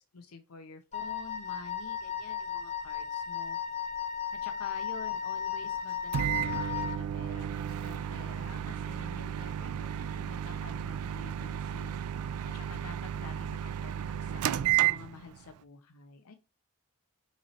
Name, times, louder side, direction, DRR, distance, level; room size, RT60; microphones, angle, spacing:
voice 1, 0.1-3.6 4.4-12.1 12.5-16.3, left 5 dB, 85° left, 6 dB, 0.7 m, -49 dB
Wind instrument woodwind instrument, 0.9-7.0, left 8 dB, 30° left, 0.6 m, -35 dB
Microwave oven, 6.1-15.5, right 10 dB, 85° right, 0.3 m, -33 dB
5.8 x 2.9 x 3.0 m, 0.30 s
head